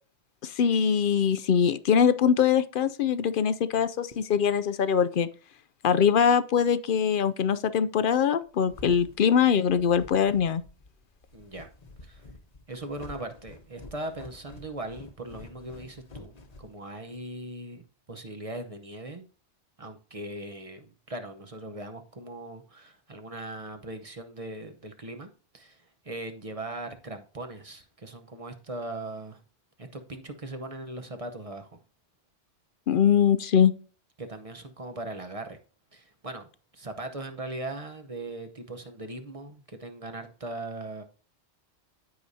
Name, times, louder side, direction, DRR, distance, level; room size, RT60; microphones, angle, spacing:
voice 1, 0.4-5.3 5.8-10.6 32.9-33.7, left 7 dB, 60° left, 0.6 m, -23 dB
sound 1, 8.3-17.2, left 2 dB, 40° left, 1.0 m, -49 dB
voice 2, 11.3-11.7 12.0-12.3 12.7-19.3 19.8-29.4 29.8-31.8 34.2-35.6 35.9-41.0, right 2 dB, 35° right, 0.9 m, -39 dB
14.5 x 4.9 x 2.7 m
omnidirectional pair, 1.1 m